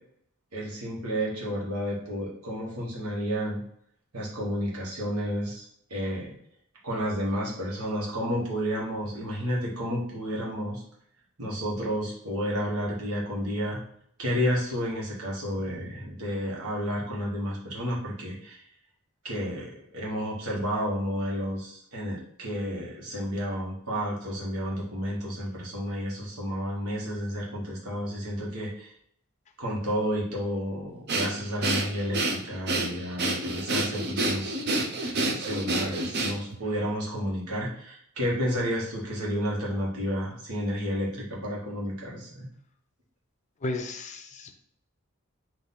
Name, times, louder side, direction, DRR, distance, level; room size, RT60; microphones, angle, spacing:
voice 1, 0.5-3.6 4.1-5.6 5.9-6.3 6.8-10.8 11.4-13.8 14.2-18.6 19.2-28.9 29.6-34.6 35.0-42.5, equal, 85° right, -3 dB, 1.4 m, -31 dB
Breathing, 31.1-36.6, right 2 dB, 50° right, 0.6 m, -28 dB
voice 2, 43.6-44.6, left 2 dB, 35° left, 6 dB, 0.5 m, -34 dB
3.9 x 2.6 x 4.0 m, 0.68 s
head